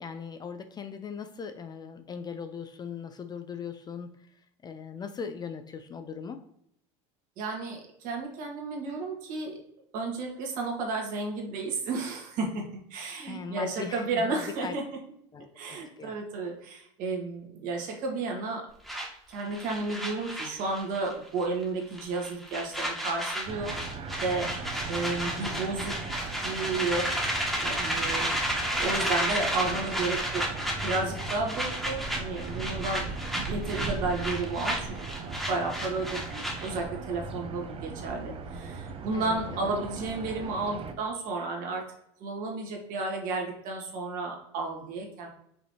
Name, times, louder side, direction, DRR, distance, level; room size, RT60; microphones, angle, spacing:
voice 1, 0.0-4.1 4.6-6.4 13.3-14.7 15.3-16.1 25.3-25.5 39.1-39.7, left 6 dB, 25° left, 8 dB, 0.4 m, -39 dB
voice 2, 7.4-9.6 9.9-12.6 12.9-14.8 15.5-18.6 19.3-23.7 24.2-24.5 24.9-27.3 27.6-28.3 28.8-30.4 30.8-33.0 33.5-35.1 35.5-41.8 42.2-45.3, right 3 dB, 55° right, 0 dB, 1.6 m, -32 dB
sound 1, 18.9-21.1 21.4-21.6 21.9-36.8, equal, ahead, 1.4 m, -32 dB
sound 2, 23.5-40.9, right 4 dB, 35° right, 0.6 m, -38 dB
5.3 x 3.2 x 2.7 m, 0.74 s
supercardioid pair, 110°, 16 cm